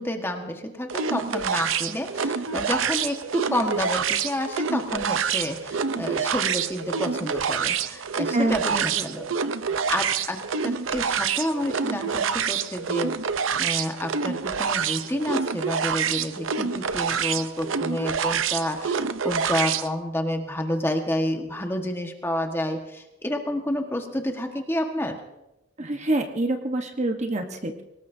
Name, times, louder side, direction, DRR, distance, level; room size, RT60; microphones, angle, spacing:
voice 1, 0.0-9.3 9.7-13.2 13.6-25.2, left 1 dB, 10° left, 4 dB, 1.5 m, -29 dB
sound 1, 0.9-19.9, right 6 dB, 85° right, 0.7 m, -27 dB
voice 2, 8.3-8.9 25.8-27.8, right 2 dB, 35° right, 5 dB, 1.2 m, -26 dB
24.5 x 19.0 x 2.7 m, 0.94 s
head